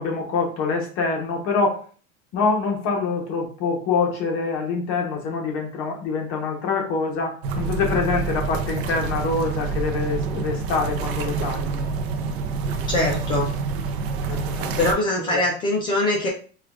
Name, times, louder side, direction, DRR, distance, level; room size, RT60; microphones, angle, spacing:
voice 1, 0.0-1.8 2.3-11.8 14.2-14.8 15.2-15.4, left 4 dB, 40° left, 1 dB, 0.9 m, -25 dB
sound 1, 7.4-14.9, right 5 dB, 60° right, 0.6 m, -27 dB
voice 2, 12.9-13.6 14.8-16.3, left 2 dB, 15° left, -2 dB, 0.3 m, -22 dB
4.6 x 2.3 x 2.4 m, 0.40 s
supercardioid pair, 155°, 34 cm